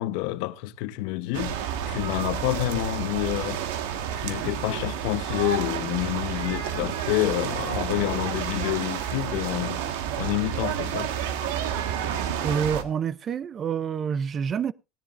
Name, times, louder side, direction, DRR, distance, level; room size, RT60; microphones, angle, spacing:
voice 1, 0.0-3.6 4.2-9.9 10.2-11.1, left 17 dB, 70° left, 0.9 m, -28 dB
sound 1, 1.3-12.8, right 9 dB, 85° right, 1.5 m, -30 dB
voice 2, 12.4-14.7, right 7 dB, 30° right, 0.5 m, -27 dB
18.5 x 10.5 x 2.5 m
cardioid pair, 145°, 0 cm